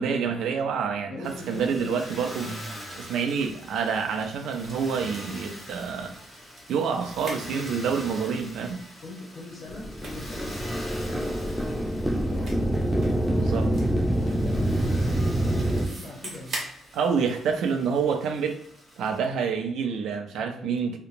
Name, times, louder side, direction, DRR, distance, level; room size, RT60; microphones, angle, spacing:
voice 1, 0.0-2.6 3.0-6.1 6.7-8.8 13.3-13.7 16.9-18.6 19.0-21.0, right 6 dB, 80° right, 6 dB, 0.4 m, -27 dB
voice 2, 1.1-2.0 8.1-8.3 8.6-8.7 9.0-12.6 13.1-13.8 14.2-16.7 20.4-20.7, left 2 dB, 60° left, -6 dB, 0.8 m, -41 dB
Motor vehicle (road), 1.2-19.2, equal, 20° left, 1.2 m, -43 dB
sound 1, 2.8-18.1, right 2 dB, 45° right, 0.9 m, -46 dB
sound 2, 9.7-15.9, right 1 dB, ahead, 0.3 m, -26 dB
2.8 x 2.1 x 2.5 m, 0.72 s
cardioid pair, 90°, 0 cm